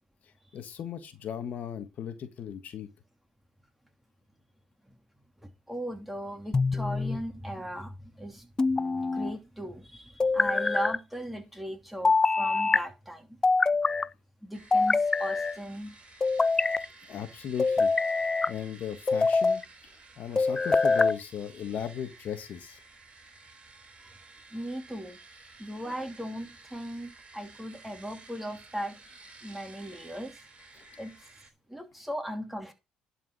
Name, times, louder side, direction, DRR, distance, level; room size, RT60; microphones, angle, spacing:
voice 1, 0.5-2.9 17.1-17.9 18.2-22.8 30.8-30.9, left 9 dB, 60° left, 1.5 m, -37 dB
voice 2, 5.4-8.5 9.0-13.4 14.4-15.9 24.5-25.2 25.6-29.0 29.4-30.4 31.0-31.2 31.7-32.7, equal, 5° right, 2.8 m, -38 dB
sound 1, 6.5-7.2 8.6-9.3 10.2-11.0 12.0-12.8 13.4-14.1 14.7-15.6 16.2-16.8 17.6-18.5 19.1-19.6 20.4-21.2, left 3 dB, 25° left, 0.4 m, -24 dB
sound 2, 14.5-31.5, right 3 dB, 40° right, 3.5 m, -53 dB
11.0 x 4.9 x 6.1 m
supercardioid pair, 65°, 3 cm